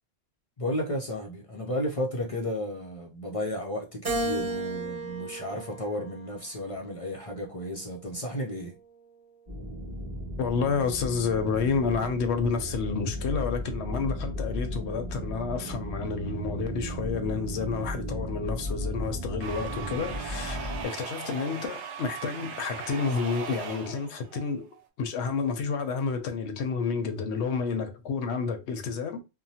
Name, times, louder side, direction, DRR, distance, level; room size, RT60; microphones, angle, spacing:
voice 1, 0.6-8.8, left 1 dB, 45° left, 0.4 m, -33 dB
Keyboard (musical), 4.0-6.5 7.1-8.3, right 2 dB, 50° right, 1.4 m, -35 dB
sound 1, 9.5-20.8, equal, 25° right, 1.3 m, -35 dB
voice 2, 10.4-24.7 25.0-29.2, left 5 dB, 85° left, 0.9 m, -30 dB
sound 2, 19.4-24.9, right 7 dB, 90° right, 0.9 m, -39 dB
2.9 x 2.1 x 2.7 m
omnidirectional pair, 1.1 m